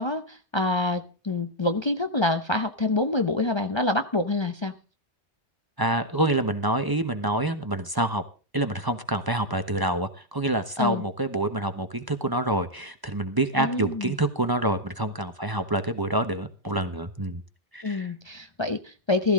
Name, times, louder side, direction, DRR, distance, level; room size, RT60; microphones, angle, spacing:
voice 1, 0.0-4.7 10.8-11.0 13.6-14.1 17.8-19.3, left 2 dB, 25° left, 7 dB, 0.8 m, -26 dB
voice 2, 5.8-8.2 8.5-17.4 17.7-18.1, right 1 dB, 20° right, 8 dB, 1.0 m, -27 dB
15.5 x 14.0 x 3.7 m, 0.35 s
omnidirectional pair, 1.1 m